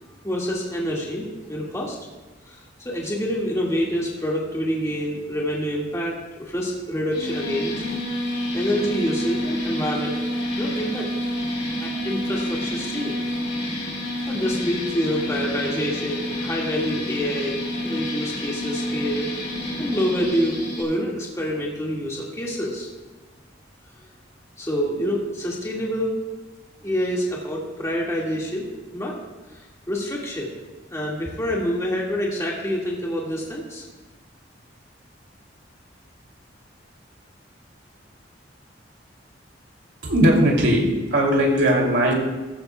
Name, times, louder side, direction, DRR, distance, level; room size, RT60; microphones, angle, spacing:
voice 1, 0.2-2.0 2.5-7.7 8.5-10.1 10.6-11.1 11.8-13.2 14.3-17.6 17.8-19.3 19.8-22.9 24.6-26.2 26.8-28.7 28.9-29.1 29.9-30.5 30.9-33.8, equal, 15° left, -3 dB, 1.9 m, -27 dB
sound 1, 7.1-20.8, left 1 dB, 65° left, 3.7 m, -28 dB
voice 2, 40.0-42.1, equal, 70° right, -1 dB, 2.7 m, -19 dB
15.0 x 14.0 x 2.3 m, 1.2 s
head